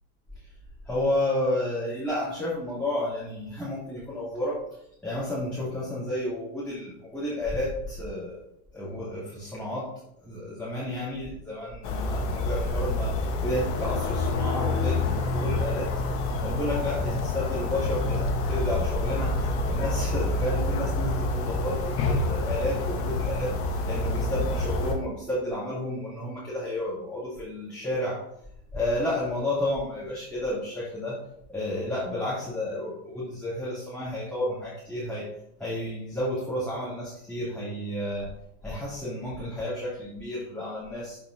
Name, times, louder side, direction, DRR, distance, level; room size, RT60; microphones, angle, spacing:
voice 1, 0.8-4.6 5.0-8.4 8.7-9.9 10.2-28.2 28.7-31.2 31.5-35.3 35.6-38.3 38.6-41.2, left 1 dB, 5° left, -10 dB, 2.8 m, -31 dB
sound 1, 11.8-25.0, left 2 dB, 30° left, 1.2 m, -27 dB
12.5 x 5.3 x 2.7 m, 0.73 s
supercardioid pair, 160°, 42 cm